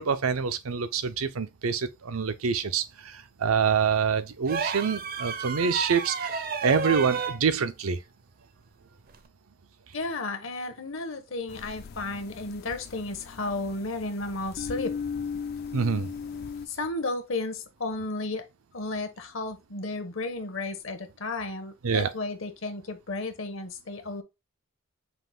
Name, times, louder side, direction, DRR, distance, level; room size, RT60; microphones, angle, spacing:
voice 1, 0.0-8.0 15.7-16.1 21.8-22.1, right 6 dB, 85° right, 0.6 m, -26 dB
sound 1, 4.5-7.4 9.1-9.3, right 5 dB, 45° right, 0.5 m, -31 dB
voice 2, 9.9-14.9 16.7-18.5 18.7-24.2, left 2 dB, 65° left, 1.0 m, -33 dB
sound 2, 11.5-16.7, left 6 dB, 45° left, 0.3 m, -37 dB
5.7 x 2.5 x 3.6 m
head